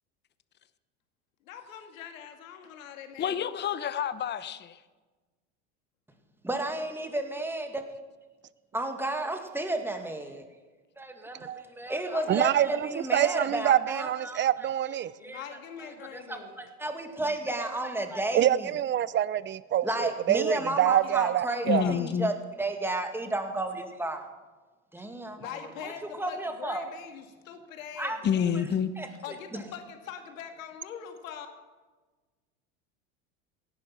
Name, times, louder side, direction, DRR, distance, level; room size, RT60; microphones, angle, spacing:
voice 1, 1.4-3.5 12.1-12.5 15.2-16.6 20.8-22.0 25.4-28.5 29.2-31.5, left 8 dB, 85° left, 2.1 m, -43 dB
voice 2, 3.2-4.8 21.7-22.3 28.2-28.9, left 8 dB, 25° left, 0.8 m, -28 dB
voice 3, 6.4-7.8 8.7-10.4 11.0-14.4 15.2-15.4 16.1-18.5 19.8-22.3 22.6-24.3 24.9-25.4 25.8-25.9 26.2-26.9 28.0-28.6 29.0-29.1 29.5-29.6, right 2 dB, 5° right, 2.0 m, -32 dB
voice 4, 12.3-15.1 18.3-21.8, right 11 dB, 30° right, 0.6 m, -26 dB
17.0 x 10.5 x 5.8 m
hypercardioid pair, 100°, 39 cm